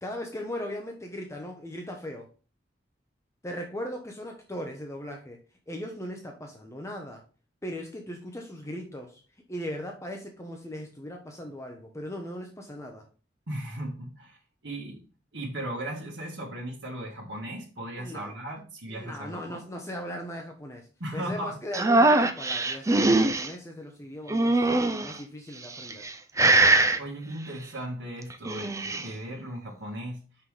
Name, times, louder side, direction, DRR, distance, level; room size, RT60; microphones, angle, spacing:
voice 1, 0.0-2.3 3.4-5.4 5.7-7.2 7.6-9.1 9.5-13.0 18.0-18.3 18.9-20.8 21.1-24.6 25.0-26.1, equal, 15° left, 2 dB, 0.8 m, -38 dB
voice 2, 13.5-15.0 15.3-19.6 21.0-21.6 26.9-30.2, right 1 dB, 85° right, -3 dB, 1.7 m, -37 dB
sound 1, 21.7-23.5 24.3-25.1 25.8-26.1 26.4-27.0 28.3-29.1, right 2 dB, 15° right, 0.5 m, -22 dB
5.8 x 5.5 x 3.3 m, 0.35 s
head